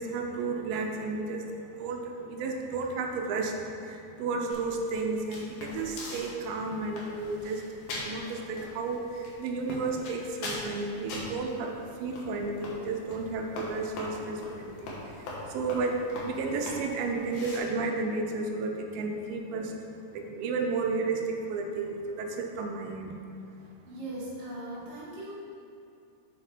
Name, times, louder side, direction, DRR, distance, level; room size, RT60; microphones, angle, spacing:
voice 1, 0.0-1.4 1.8-3.5 3.8-7.6 8.0-11.7 12.0-15.0 15.5-19.7 20.1-23.1, right 3 dB, 85° right, 2 dB, 2.5 m, -32 dB
sound 1, 4.5-17.6, left 2 dB, 80° left, 3.1 m, -42 dB
voice 2, 23.8-25.3, right 1 dB, 35° right, -7 dB, 1.1 m, -39 dB
7.1 x 7.0 x 4.5 m, 2.4 s
omnidirectional pair, 4.1 m